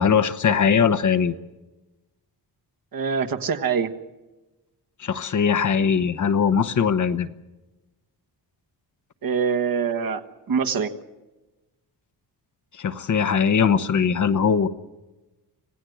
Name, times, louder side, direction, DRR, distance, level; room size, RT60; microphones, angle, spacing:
voice 1, 0.0-1.3 5.0-7.3 12.8-14.7, left 6 dB, 45° left, 11 dB, 1.0 m, -20 dB
voice 2, 2.9-3.9 9.2-10.2 10.5-10.9, right 6 dB, 55° right, 6 dB, 1.5 m, -24 dB
26.5 x 17.0 x 7.9 m, 1.1 s
cardioid pair, 125°, 41 cm